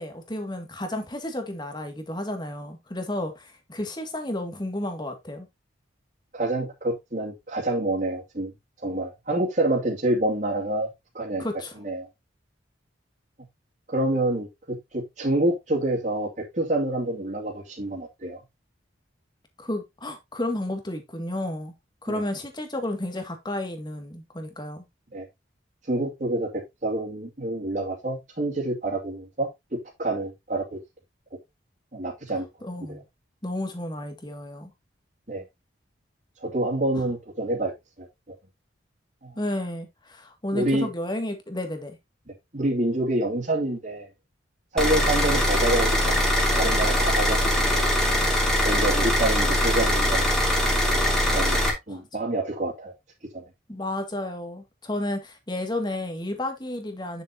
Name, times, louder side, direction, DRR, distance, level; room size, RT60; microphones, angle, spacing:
voice 1, 0.0-5.5 11.4-11.8 19.6-21.7 22.0-24.8 32.6-33.0 33.4-34.7 39.4-42.0 51.9-52.0 53.7-57.2, left 1 dB, 25° left, 2.1 m, -32 dB
voice 2, 6.3-8.5 8.8-10.9 11.1-11.5 11.8-12.1 13.9-18.4 22.1-22.2 25.1-25.2 25.9-30.8 31.9-32.5 32.9-33.0 35.3-35.4 36.4-37.7 38.0-38.1 39.2-39.4 40.5-40.9 42.5-44.1 44.7-47.7 48.6-50.4 51.3-52.9 53.3-53.4, right 1 dB, 40° right, 2.6 m, -27 dB
sound 1, 44.8-51.7, left 1 dB, 5° left, 2.9 m, -22 dB
9.8 x 7.1 x 2.8 m
head